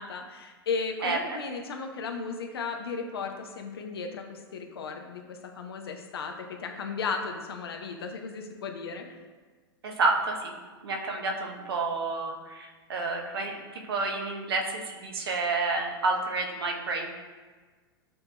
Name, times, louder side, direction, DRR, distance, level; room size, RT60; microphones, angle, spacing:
voice 1, 0.0-9.1, left 4 dB, 75° left, 3 dB, 0.6 m, -35 dB
voice 2, 9.8-10.5 10.8-17.1, right 3 dB, 75° right, 2 dB, 0.7 m, -29 dB
7.7 x 2.8 x 2.2 m, 1.4 s
hypercardioid pair, 100°, 13 cm